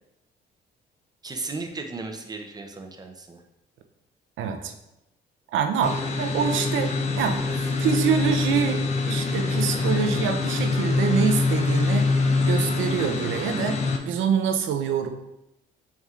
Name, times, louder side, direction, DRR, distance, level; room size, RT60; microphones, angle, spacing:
voice 1, 1.2-3.4, right 3 dB, 20° right, 4 dB, 0.5 m, -35 dB
voice 2, 4.4-4.7 5.5-7.4 7.8-8.8 9.1-12.1 12.4-13.8 14.0-15.1, right 7 dB, 80° right, 6 dB, 0.5 m, -25 dB
sound 1, 5.8-14.0, left 3 dB, 35° left, 0.5 m, -24 dB
4.2 x 3.5 x 2.4 m, 0.88 s
cardioid pair, 90°, 20 cm